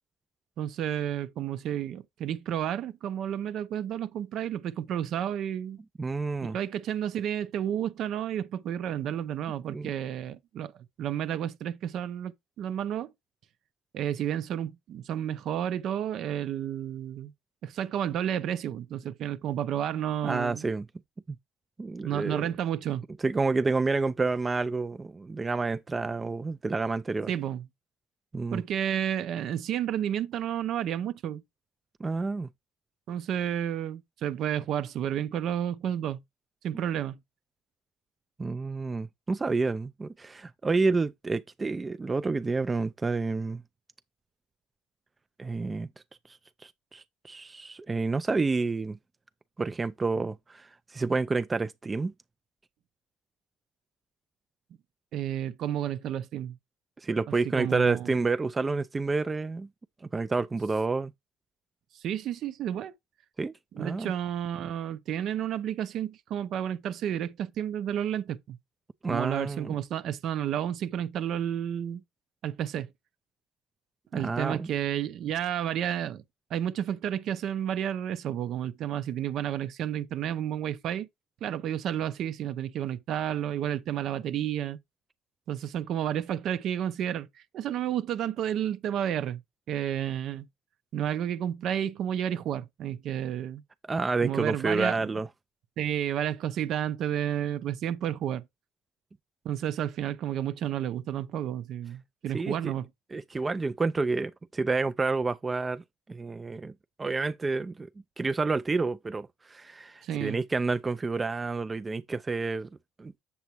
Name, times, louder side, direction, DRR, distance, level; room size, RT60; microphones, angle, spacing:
voice 1, 0.6-5.8 6.4-10.7 11.0-13.1 13.9-17.3 17.6-20.6 22.0-23.1 27.3-27.6 28.5-31.4 33.1-36.2 36.6-37.2 55.1-56.6 57.6-58.1 62.0-62.9 63.7-68.6 69.1-72.0 72.4-72.9 74.1-76.2 76.5-81.1 81.4-84.8 85.5-87.3 87.5-89.4 89.7-90.5 90.9-93.6 94.2-95.1 95.8-98.4 99.4-102.8 110.0-110.4, right 10 dB, 60° right, 0.7 m, -31 dB
voice 2, 6.0-6.6 9.7-9.9 20.2-20.9 21.3-21.4 21.8-22.5 23.2-27.3 28.3-28.6 32.0-32.5 38.4-43.6 45.4-45.9 46.6-49.0 49.6-52.1 57.0-59.7 60.1-61.1 63.4-64.1 69.0-69.7 74.1-74.7 93.9-95.3 102.3-102.7 103.1-105.8 106.1-106.7 107.0-107.9 108.2-112.7 113.0-113.1, right 3 dB, 25° right, 0.4 m, -29 dB
7.8 x 7.0 x 3.0 m
supercardioid pair, 85°, 0 cm